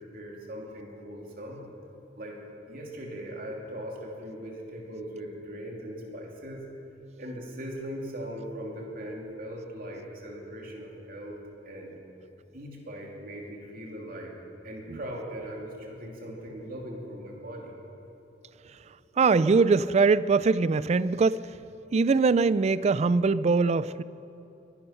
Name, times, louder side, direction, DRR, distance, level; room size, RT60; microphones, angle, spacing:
voice 1, 0.0-1.6 2.2-2.4 2.7-6.6 7.2-11.4 11.6-12.0 12.5-14.3 14.6-17.7, equal, 55° right, -1 dB, 2.7 m, -39 dB
voice 2, 19.2-21.4 21.9-24.0, right 4 dB, 40° right, 18 dB, 0.3 m, -22 dB
22.5 x 11.0 x 5.8 m, 2.8 s
head